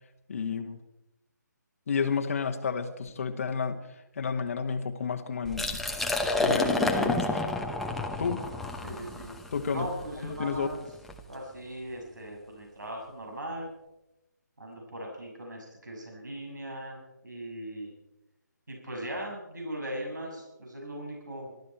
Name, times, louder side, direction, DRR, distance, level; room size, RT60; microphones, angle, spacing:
voice 1, 0.3-0.8 1.9-3.9 4.2-5.8 6.4-7.5 8.2-8.4 9.5-9.9 10.2-10.7, left 6 dB, 45° left, 5 dB, 1.3 m, -31 dB
Liquid, 5.4-11.2, left 2 dB, ahead, 0.9 m, -30 dB
voice 2, 8.8-9.4 9.7-10.7 11.3-13.7 14.6-17.9 18.7-21.5, right 1 dB, 70° right, 0 dB, 6.3 m, -39 dB
23.0 x 13.5 x 4.5 m, 0.94 s
figure-of-eight pair, 150°, 10 cm